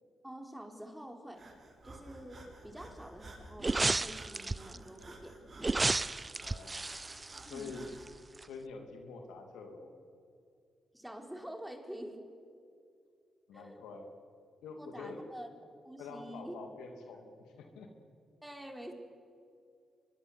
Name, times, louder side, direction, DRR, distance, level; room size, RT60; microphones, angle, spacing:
voice 1, 0.2-1.5 1.8-5.8 7.5-7.8 10.9-12.2 13.5-13.8 14.8-15.5 15.8-16.6 18.4-18.9, equal, 5° right, 4 dB, 4.3 m, -47 dB
Breathing, 1.3-8.1, right 2 dB, 45° right, 7.3 m, -53 dB
sound 1, 3.6-4.8 5.6-8.1 8.4-8.5, right 3 dB, 30° right, 0.5 m, -32 dB
voice 2, 6.4-6.8 7.4-7.9 8.4-9.9 13.5-14.1 14.6-15.3 16.0-17.9, left 4 dB, 90° left, 4 dB, 2.8 m, -46 dB
24.0 x 21.5 x 8.2 m, 2.4 s
supercardioid pair, 55°, 0 cm